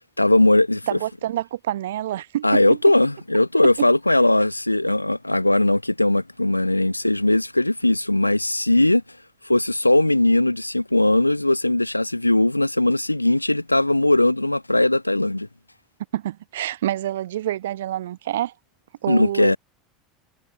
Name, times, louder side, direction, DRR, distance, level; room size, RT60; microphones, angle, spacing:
voice 1, 0.2-1.0 2.4-9.0 9.4-15.5 19.1-19.6, left 1 dB, 90° left, 0.7 m, -19 dB
voice 2, 0.9-2.8 3.8-3.9 16.1-18.5 19.0-19.6, right 13 dB, 65° right, 1.0 m, -27 dB
figure-of-eight pair, 75°, 0 cm